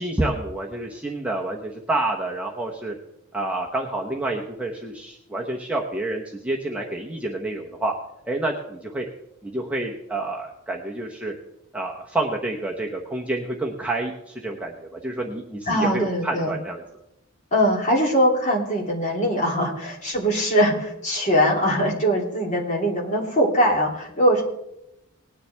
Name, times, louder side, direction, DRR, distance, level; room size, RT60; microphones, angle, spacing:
voice 1, 0.0-3.0 3.3-7.9 8.3-9.0 9.4-11.3 11.7-16.8, right 2 dB, 5° right, -2 dB, 0.9 m, -28 dB
voice 2, 15.7-16.5 17.5-24.4, equal, 35° left, -1 dB, 2.9 m, -21 dB
19.5 x 10.0 x 3.4 m, 0.83 s
head